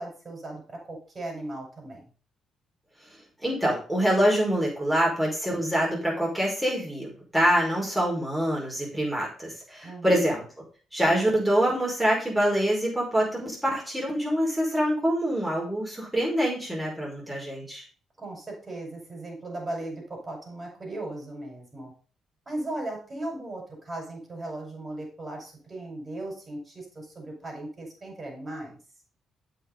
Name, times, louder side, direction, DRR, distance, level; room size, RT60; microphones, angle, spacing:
voice 1, 0.0-2.0 9.8-10.3 18.2-21.9 22.5-28.8, right 1 dB, 30° right, 0 dB, 5.7 m, -37 dB
voice 2, 3.4-10.4 10.9-17.8, equal, 5° right, -3 dB, 5.1 m, -25 dB
8.3 x 5.8 x 5.3 m, 0.39 s
cardioid pair, 90°, 0 cm